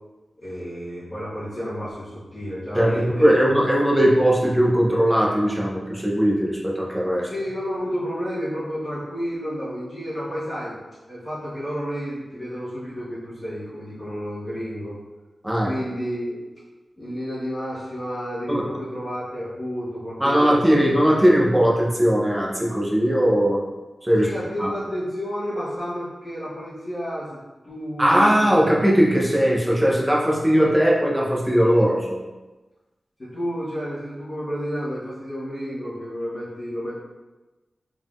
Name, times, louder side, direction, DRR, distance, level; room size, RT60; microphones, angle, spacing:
voice 1, 0.4-3.3 4.0-4.1 7.2-10.8 11.0-14.9 15.6-16.4 17.0-21.0 24.2-27.3 27.6-28.4 33.2-36.9, equal, 30° left, -12 dB, 1.4 m, -31 dB
voice 2, 2.7-7.3 15.4-15.7 18.5-18.7 20.2-23.6 24.0-24.3 24.6-24.7 28.0-32.2, equal, 5° right, -4 dB, 0.8 m, -19 dB
3.9 x 3.8 x 2.5 m, 1.2 s
wide cardioid pair, 110°, 0 cm